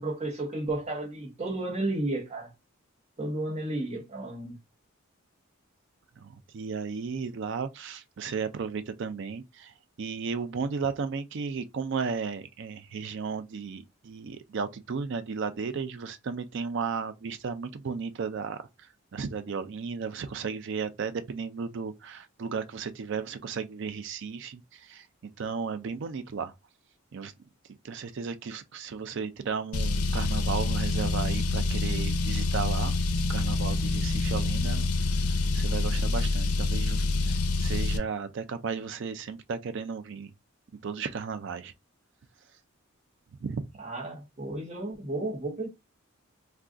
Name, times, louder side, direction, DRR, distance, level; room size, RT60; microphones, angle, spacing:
voice 1, 0.0-2.5 3.2-4.6 43.8-45.7, right 2 dB, 30° right, 0.9 m, -32 dB
voice 2, 6.2-25.1 25.4-26.5 27.1-27.3 27.8-33.0 33.3-34.9 35.3-40.3 40.8-41.7 43.4-43.6, right 5 dB, 55° right, 0.4 m, -34 dB
Car, 29.7-38.0, left 3 dB, 85° left, 0.5 m, -27 dB
2.3 x 2.3 x 3.6 m
head